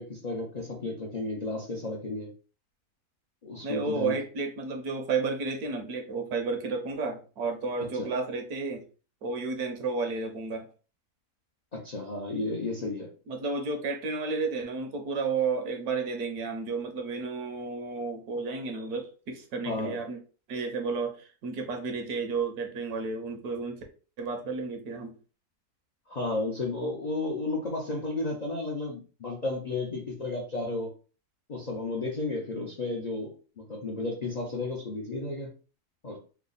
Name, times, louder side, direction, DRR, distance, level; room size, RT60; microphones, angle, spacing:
voice 1, 0.0-2.3 3.4-4.2 7.9-8.1 11.7-13.1 19.6-20.0 26.1-30.9 31.5-35.5 36.0-36.2, left 2 dB, 65° left, -1 dB, 0.4 m, -33 dB
voice 2, 3.6-8.8 9.2-10.7 13.3-20.2 20.5-23.8 24.2-25.2, right 4 dB, 75° right, 4 dB, 1.3 m, -32 dB
3.4 x 2.0 x 3.8 m, 0.37 s
omnidirectional pair, 1.7 m